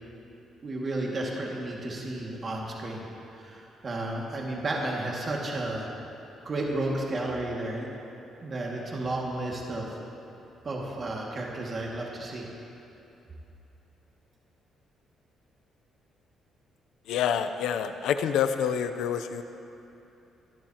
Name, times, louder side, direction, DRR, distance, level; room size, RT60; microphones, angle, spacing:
voice 1, 0.6-3.0 3.3-5.9 6.4-7.9 8.4-10.0 10.6-12.5, right 2 dB, 40° right, -2 dB, 2.2 m, -32 dB
voice 2, 17.1-19.4, left 8 dB, 85° left, 9 dB, 0.6 m, -27 dB
25.5 x 12.0 x 3.0 m, 2.9 s
cardioid pair, 90°, 0 cm